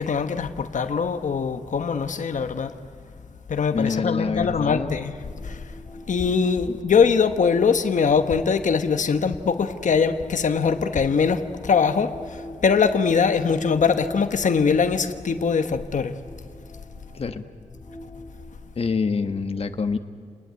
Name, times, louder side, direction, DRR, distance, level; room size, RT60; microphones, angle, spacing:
voice 1, 0.0-2.7 3.5-5.1 5.4-5.6 6.1-12.1 12.6-16.1, left 5 dB, 85° left, 8 dB, 1.1 m, -22 dB
voice 2, 3.7-5.0 6.7-6.8 17.1-17.4 18.8-20.0, left 5 dB, 50° left, 7 dB, 1.2 m, -26 dB
sound 1, 5.0-10.8 11.3-19.4, equal, 5° left, 5.3 m, -45 dB
29.5 x 20.0 x 9.5 m, 2.3 s
wide cardioid pair, 130°, 13 cm